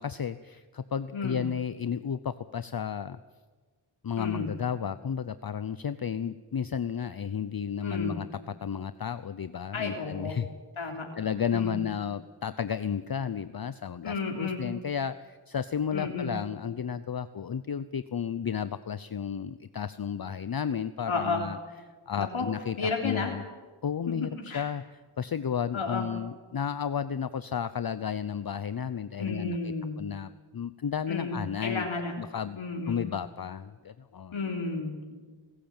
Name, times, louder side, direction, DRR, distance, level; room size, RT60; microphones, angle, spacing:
voice 1, 0.0-3.2 4.0-10.5 10.8-21.6 21.9-23.4 23.8-31.9 32.2-34.5, left 7 dB, 45° left, 13 dB, 0.8 m, -33 dB
voice 2, 4.2-4.5 7.8-8.2 9.7-10.4 10.8-11.1 11.5-11.8 14.0-14.6 15.9-16.3 21.1-21.4 22.2-22.5 22.8-23.3 24.1-24.2 24.5-24.7 25.7-26.0 29.2-30.0 31.1-32.1 32.5-33.0 34.3-35.1, left 4 dB, 70° left, 1 dB, 3.6 m, -32 dB
28.0 x 15.0 x 8.9 m, 1.4 s
wide cardioid pair, 65°, 50 cm